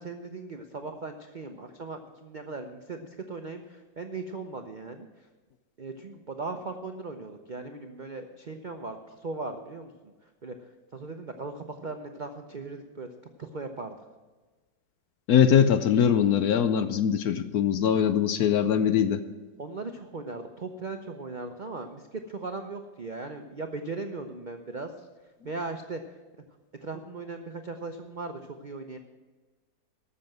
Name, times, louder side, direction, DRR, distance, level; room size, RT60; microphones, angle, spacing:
voice 1, 0.0-5.1 5.8-9.9 10.4-10.5 10.9-13.1 13.4-13.9 19.6-24.9 25.4-26.0 26.8-29.0, right 3 dB, 65° right, 5 dB, 0.4 m, -38 dB
voice 2, 15.3-19.2, left 8 dB, 70° left, 11 dB, 1.0 m, -22 dB
13.5 x 7.0 x 7.6 m, 1.3 s
omnidirectional pair, 1.9 m